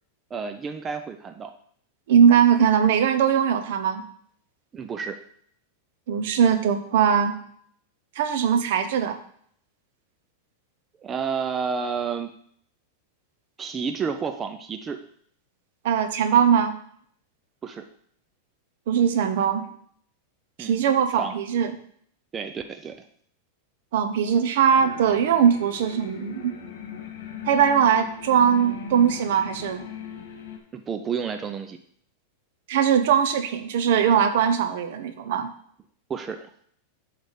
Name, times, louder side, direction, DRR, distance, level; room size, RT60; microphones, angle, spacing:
voice 1, 0.3-1.5 4.7-5.2 11.0-12.3 13.6-15.0 17.6-17.8 20.6-20.8 21.2-21.3 22.3-23.0 30.7-31.8 36.1-36.5, right 6 dB, 20° right, 6 dB, 0.4 m, -30 dB
voice 2, 2.1-4.0 6.1-7.3 8.2-9.2 15.8-16.7 18.9-19.6 20.6-21.7 23.9-26.5 27.4-29.9 32.7-35.5, right 8 dB, 65° right, 9 dB, 0.9 m, -20 dB
sound 1, 24.7-30.6, left 6 dB, 80° left, 1.5 m, -39 dB
8.2 x 3.4 x 6.5 m, 0.63 s
supercardioid pair, 160°, 0 cm